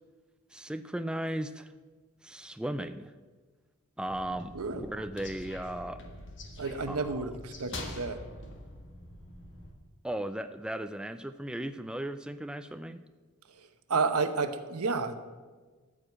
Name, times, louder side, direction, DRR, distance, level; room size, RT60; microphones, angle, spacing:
voice 1, 0.5-1.7 2.2-3.1 4.0-6.0 6.9-7.3 10.0-13.0, right 1 dB, 5° right, 9 dB, 0.3 m, -36 dB
sound 1, 4.1-9.7, left 1 dB, 55° left, 1.6 m, -45 dB
voice 2, 6.6-8.2 13.9-15.2, right 4 dB, 90° right, 9 dB, 0.9 m, -30 dB
13.5 x 4.9 x 8.4 m, 1.4 s
head